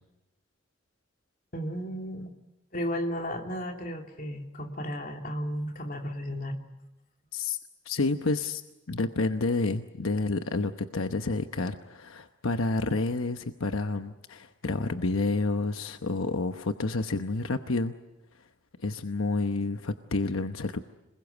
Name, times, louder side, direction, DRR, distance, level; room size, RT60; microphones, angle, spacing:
voice 1, 1.5-2.3 2.7-6.6, equal, 40° left, 2 dB, 2.9 m, -34 dB
voice 2, 7.8-8.6 8.9-17.9 18.8-20.8, left 3 dB, 85° left, 8 dB, 1.0 m, -29 dB
27.0 x 21.0 x 8.1 m, 0.99 s
head